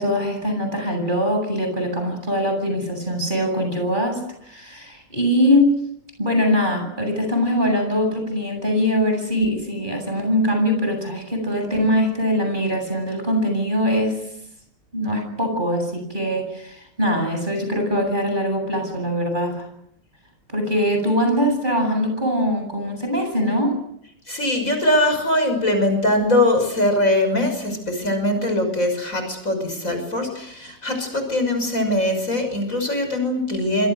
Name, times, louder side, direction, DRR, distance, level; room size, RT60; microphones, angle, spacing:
voice 1, 0.0-5.8 6.2-14.2 14.9-19.7 20.5-23.8, equal, 25° right, 4 dB, 8.4 m, -22 dB
voice 2, 24.3-33.9, left 1 dB, 45° left, 5 dB, 6.5 m, -21 dB
26.5 x 26.0 x 6.6 m, 0.74 s
omnidirectional pair, 1.9 m